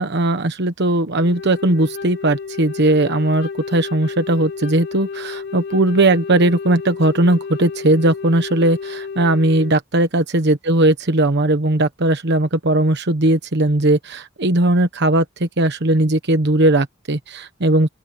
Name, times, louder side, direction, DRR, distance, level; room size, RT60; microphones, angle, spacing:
voice 1, 0.0-17.9, right 1 dB, 60° right, 1.2 m, -18 dB
Wind instrument woodwind instrument, 1.1-9.8, left 5 dB, 60° left, 2.4 m, -32 dB
open air
head